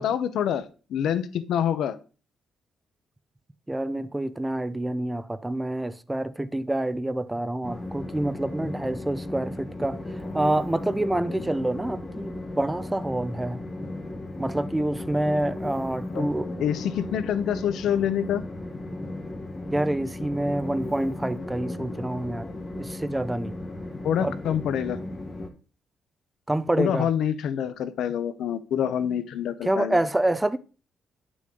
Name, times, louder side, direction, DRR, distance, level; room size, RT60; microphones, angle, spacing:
voice 1, 0.0-2.0 16.1-16.3 16.6-18.4 24.0-25.0 26.8-30.0, left 9 dB, 70° left, 0.8 m, -26 dB
voice 2, 3.7-10.0 10.3-13.6 14.4-16.5 19.7-22.5 22.8-23.6 24.2-24.3 26.5-27.1 29.6-30.6, right 1 dB, 10° right, 0.5 m, -27 dB
Train, 7.6-25.5, left 2 dB, 20° left, 1.1 m, -36 dB
9.3 x 6.1 x 3.8 m
cardioid pair, 155°, 0 cm